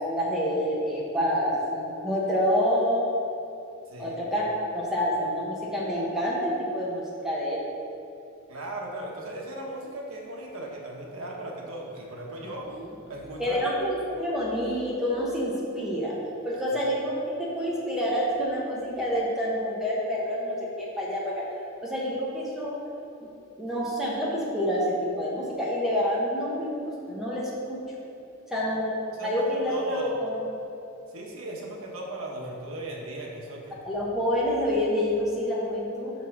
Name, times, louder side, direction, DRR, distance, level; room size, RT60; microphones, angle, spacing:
voice 1, 0.2-3.0 4.0-4.4 4.7-7.6 12.7-12.9 13.4-16.1 16.4-17.1 17.4-21.4 21.8-22.7 23.2-23.3 23.6-27.8 28.5-29.0 29.2-30.6 33.8-36.1, equal, ahead, -6 dB, 1.0 m, -27 dB
voice 2, 8.5-12.8 13.1-13.6 29.2-30.1 31.1-33.8, right 1 dB, 85° right, -1 dB, 1.2 m, -37 dB
5.8 x 4.6 x 5.9 m, 2.8 s
head